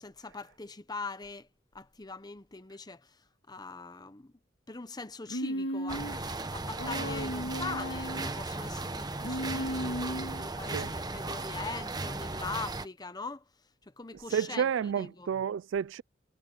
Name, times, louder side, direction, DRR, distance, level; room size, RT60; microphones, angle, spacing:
voice 1, 0.0-1.5 1.7-4.3 4.7-6.3 6.5-13.4 13.9-15.3, left 3 dB, 20° left, 1.0 m, -42 dB
Human voice, 5.3-6.2 6.8-8.3 9.2-10.5, equal, 85° left, 1.7 m, -35 dB
sound 1, 5.9-12.9, right 2 dB, 20° right, 1.0 m, -36 dB
voice 2, 14.3-16.0, right 7 dB, 75° right, 0.3 m, -30 dB
head